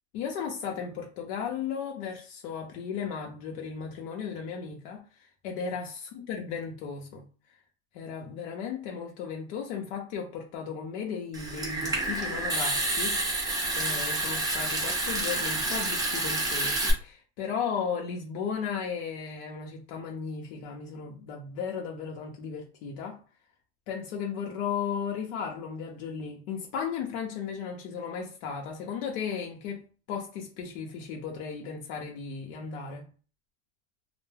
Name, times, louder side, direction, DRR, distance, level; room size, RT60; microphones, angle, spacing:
voice 1, 0.1-5.0 5.4-7.3 7.9-13.2 13.7-23.2 23.9-33.1, left 6 dB, 70° left, 0.7 m, -35 dB
Water tap faucet / Sink (filling or washing) / Trickle dribble, 11.3-16.9, right 2 dB, 10° right, 0.3 m, -29 dB
2.2 x 2.1 x 3.2 m
supercardioid pair, 135°, 40 cm